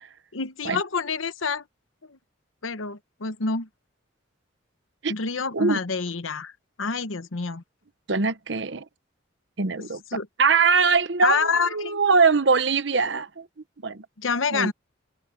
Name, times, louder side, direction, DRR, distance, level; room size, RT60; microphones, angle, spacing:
voice 1, 0.3-1.6 2.1-2.2 2.6-3.7 5.1-6.5 6.8-7.6 9.8-10.3 11.2-12.0 14.2-14.7, left 5 dB, 90° left, 1.0 m, -27 dB
voice 2, 8.1-8.8 9.6-10.0 10.4-13.4 13.8-14.0 14.5-14.7, right 4 dB, 65° right, 1.0 m, -22 dB
open air
head